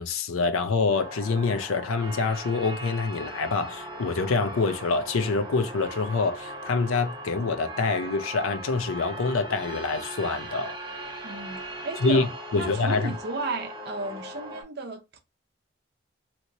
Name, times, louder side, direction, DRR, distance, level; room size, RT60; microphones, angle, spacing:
voice 1, 0.0-10.8 12.0-12.3 12.5-13.1, left 4 dB, 85° left, 0.5 m, -26 dB
sound 1, 0.9-14.6, right 1 dB, 20° right, 0.8 m, -39 dB
voice 2, 11.2-15.2, right 3 dB, 50° right, 0.6 m, -34 dB
2.9 x 2.7 x 2.9 m
head